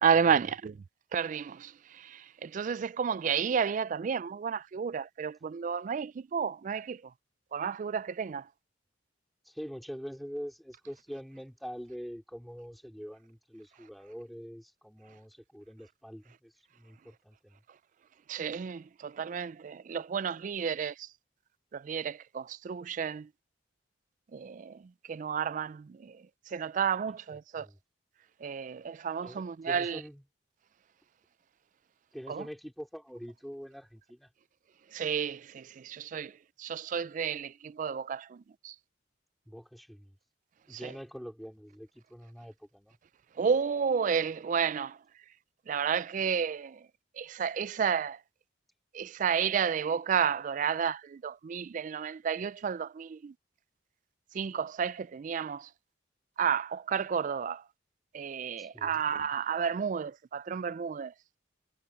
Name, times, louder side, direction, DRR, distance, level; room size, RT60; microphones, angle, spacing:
voice 1, 0.0-0.5 1.1-1.6 2.4-7.0 7.5-8.4 18.3-20.9 21.9-23.2 24.3-24.7 25.1-25.8 26.5-27.7 28.4-30.0 34.9-36.3 36.6-38.2 38.6-38.7 43.4-44.9 45.7-46.7 47.2-48.2 49.0-53.3 54.4-55.6 56.4-57.6 58.1-61.1, right 7 dB, 40° right, 0.3 m, -31 dB
voice 2, 9.4-17.6 27.1-27.8 29.2-30.3 32.1-34.3 39.5-40.2 40.7-43.0 58.6-59.0, equal, ahead, 2.4 m, -45 dB
head